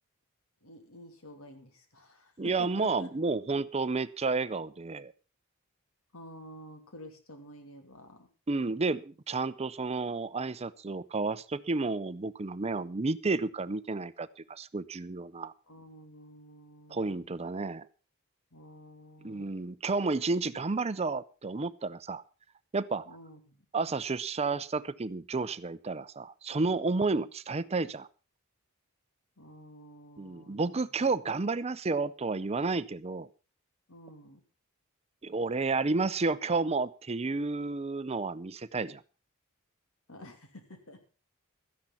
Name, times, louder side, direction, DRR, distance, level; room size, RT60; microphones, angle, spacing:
voice 1, 0.6-3.1 6.1-8.3 15.7-17.3 18.5-19.6 23.1-23.6 29.4-30.8 33.9-34.4 40.1-41.0, left 1 dB, 70° left, 6 dB, 2.7 m, -50 dB
voice 2, 2.4-5.1 8.5-15.5 16.9-17.9 19.2-22.2 22.7-23.1 23.7-28.1 30.2-33.3 35.2-39.0, right 3 dB, 30° right, 16 dB, 0.6 m, -31 dB
13.0 x 10.5 x 5.7 m, 0.35 s
head